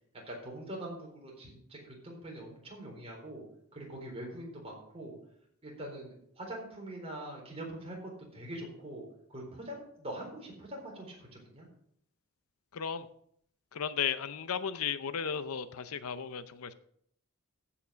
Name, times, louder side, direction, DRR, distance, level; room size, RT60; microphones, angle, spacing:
voice 1, 0.3-3.4 3.7-5.2 5.6-11.7, right 1 dB, 30° right, -1 dB, 4.1 m, -43 dB
voice 2, 12.7-13.1 13.7-16.7, left 7 dB, 75° left, 13 dB, 0.6 m, -35 dB
14.5 x 5.9 x 5.1 m, 0.69 s
head